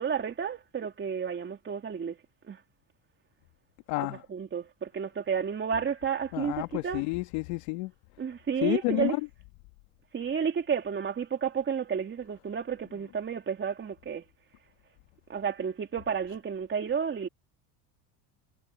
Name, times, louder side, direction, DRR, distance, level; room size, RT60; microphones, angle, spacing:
voice 1, 0.0-2.2 2.5-2.6 4.3-6.5 6.8-7.0 8.2-9.1 10.1-14.2 15.3-17.3, right 7 dB, 25° right, 3.2 m, -31 dB
voice 2, 3.9-4.2 6.3-7.9 8.6-9.2, left 23 dB, 85° left, 2.2 m, -30 dB
cardioid pair, 130°, 45 cm